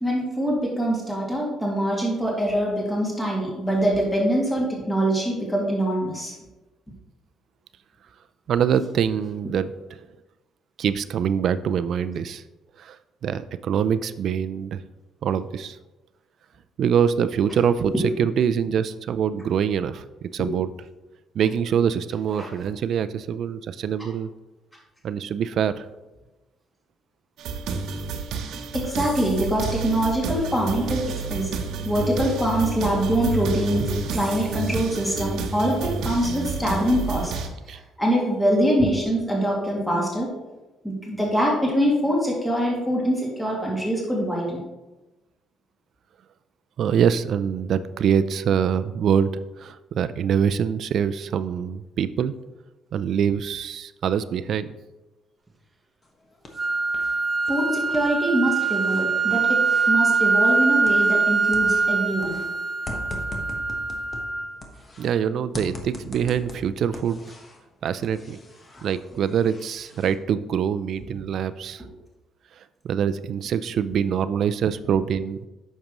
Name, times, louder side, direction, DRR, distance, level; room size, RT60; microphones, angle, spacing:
voice 1, 0.0-6.4 20.4-20.5 22.4-22.5 28.7-31.0 31.3-31.6 31.8-37.3 38.0-40.3 40.8-44.6 57.5-59.6 59.9-62.4, equal, 10° left, -3 dB, 2.2 m, -24 dB
voice 2, 8.5-10.0 10.8-12.4 12.8-13.0 13.2-14.8 15.2-15.8 16.8-20.7 21.4-24.3 25.0-25.9 37.7-37.8 46.8-52.3 52.9-54.7 65.0-67.2 67.8-68.4 68.8-71.8 72.8-75.4, right 8 dB, 60° right, 13 dB, 0.3 m, -24 dB
sound 1, 27.4-37.5, right 4 dB, 80° right, 0.8 m, -29 dB
sound 2, 56.0-57.1 57.4-61.3 61.5-65.1 65.5-67.6 68.0-70.1, left 1 dB, 30° left, 1.2 m, -41 dB
sound 3, 56.6-64.6, right 4 dB, 15° right, 1.0 m, -23 dB
8.8 x 6.4 x 3.0 m, 1.1 s
cardioid pair, 105°, 0 cm